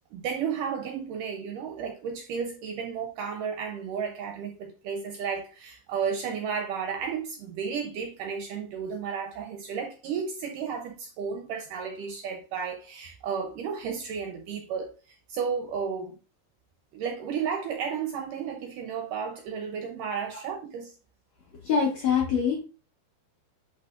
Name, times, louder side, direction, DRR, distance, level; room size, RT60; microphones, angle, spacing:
voice 1, 0.1-16.2 16.9-20.9, right 6 dB, 75° right, 2.0 m, -33 dB
voice 2, 21.6-22.6, left 6 dB, 70° left, 1.7 m, -24 dB
10.5 x 4.1 x 2.5 m
omnidirectional pair, 4.5 m